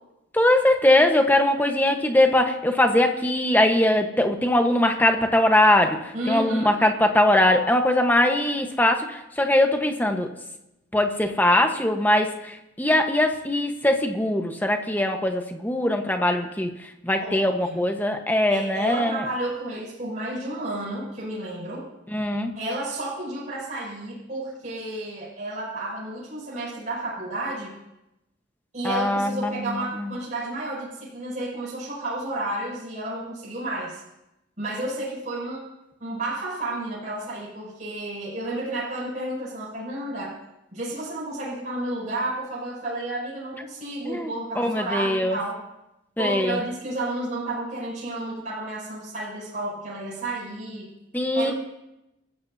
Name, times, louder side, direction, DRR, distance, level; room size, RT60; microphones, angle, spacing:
voice 1, 0.3-10.3 10.9-16.7 17.0-19.3 22.1-22.5 28.8-29.7 30.0-30.1 44.0-45.4 46.2-46.6 51.1-51.5, left 1 dB, 10° left, 4 dB, 1.1 m, -21 dB
voice 2, 6.1-6.7 17.2-17.8 18.5-21.8 22.5-27.8 28.7-34.0 34.6-35.6 36.0-40.4 40.7-45.6 46.2-50.9 51.3-51.5, right 1 dB, 40° right, -8 dB, 6.5 m, -31 dB
28.0 x 15.0 x 2.7 m, 0.90 s
head